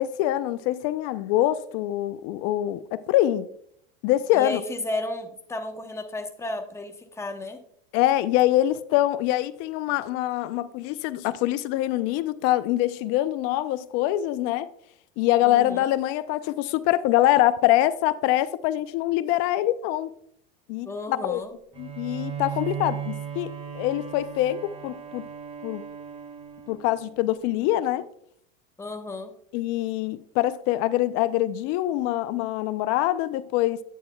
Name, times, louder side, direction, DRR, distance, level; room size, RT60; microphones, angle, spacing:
voice 1, 0.0-3.5 4.0-4.6 7.9-14.7 15.2-20.1 20.7-21.4 21.8-25.3 25.6-25.8 26.7-28.1 29.5-33.8, left 14 dB, 55° left, 0.5 m, -24 dB
voice 2, 4.3-7.6 15.4-15.9 20.8-21.5 28.8-29.3, left 2 dB, 10° left, 0.9 m, -33 dB
Bowed string instrument, 21.7-27.2, right 8 dB, 20° right, 1.6 m, -37 dB
9.2 x 8.7 x 2.2 m
supercardioid pair, 110°, 29 cm